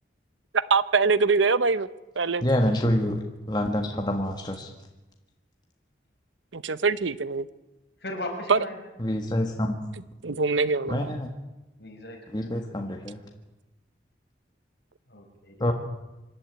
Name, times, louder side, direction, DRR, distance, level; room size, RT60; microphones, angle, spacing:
voice 1, 0.5-1.9 2.2-2.5 6.5-7.5 8.5-8.6 10.2-11.2, right 4 dB, 85° right, 16 dB, 0.8 m, -23 dB
voice 2, 2.4-3.2 3.5-4.7 9.0-9.8 10.9-11.3 12.3-13.2 15.6-15.7, left 1 dB, 20° left, 3 dB, 1.5 m, -26 dB
voice 3, 8.0-8.8 11.8-12.5 15.1-15.7, left 1 dB, 60° left, 1 dB, 5.8 m, -37 dB
26.0 x 11.5 x 9.2 m, 1.0 s
head